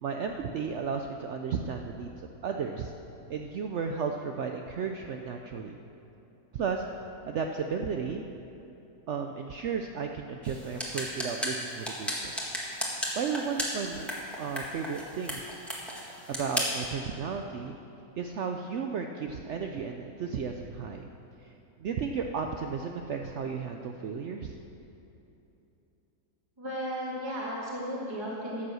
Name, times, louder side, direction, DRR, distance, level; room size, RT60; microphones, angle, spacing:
voice 1, 0.0-2.9 3.3-5.8 6.5-6.9 7.3-8.3 9.1-12.3 12.8-12.9 13.2-14.1 14.4-15.5 16.3-17.8 18.2-21.1 21.4-21.5 21.8-24.5, right 6 dB, 65° right, 4 dB, 0.7 m, -34 dB
sound 1, 10.4-16.9, equal, ahead, 1.7 m, -35 dB
voice 2, 26.6-28.6, equal, 15° right, -6 dB, 1.9 m, -34 dB
12.5 x 7.9 x 6.2 m, 2.9 s
omnidirectional pair, 1.6 m